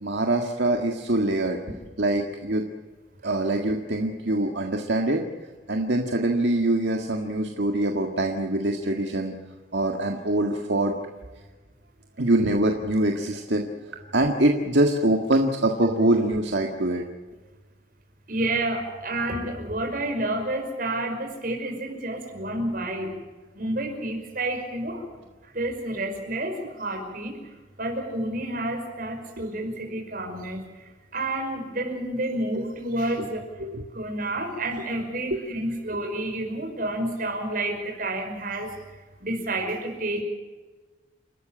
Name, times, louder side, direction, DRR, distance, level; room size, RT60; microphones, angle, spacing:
voice 1, 0.0-1.6 2.0-2.6 3.2-5.2 5.7-9.3 9.7-10.9 12.2-13.6 14.1-17.0 33.6-33.8, right 1 dB, 70° right, 3 dB, 1.8 m, -24 dB
voice 2, 18.3-23.2 23.5-25.0 25.5-27.4 27.8-33.4 33.9-38.7 39.2-40.2, right 1 dB, 50° right, 3 dB, 5.5 m, -29 dB
29.5 x 13.5 x 8.9 m, 1.3 s
head